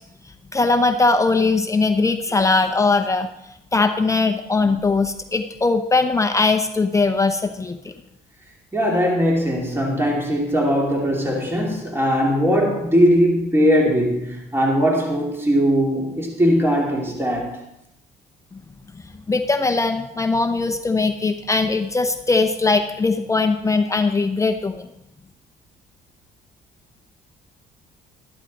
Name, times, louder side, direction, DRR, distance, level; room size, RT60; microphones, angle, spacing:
voice 1, 0.5-3.3 3.7-7.9 19.3-24.9, left 3 dB, 20° left, 0.7 m, -20 dB
voice 2, 8.7-17.7, equal, 15° right, 2.7 m, -20 dB
12.5 x 12.0 x 4.1 m
cardioid pair, 110°, 17 cm